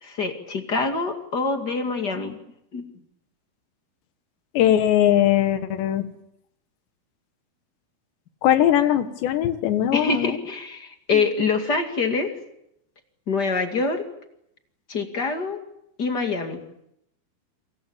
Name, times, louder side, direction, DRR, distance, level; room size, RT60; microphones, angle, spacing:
voice 1, 0.0-2.4 2.7-2.9 9.9-12.3 13.3-14.0 14.9-15.6 16.0-16.6, left 4 dB, 30° left, 5 dB, 2.0 m, -25 dB
voice 2, 4.6-6.1 8.4-10.4, left 11 dB, 85° left, 10 dB, 3.8 m, -20 dB
27.5 x 25.0 x 7.3 m, 0.78 s
omnidirectional pair, 4.9 m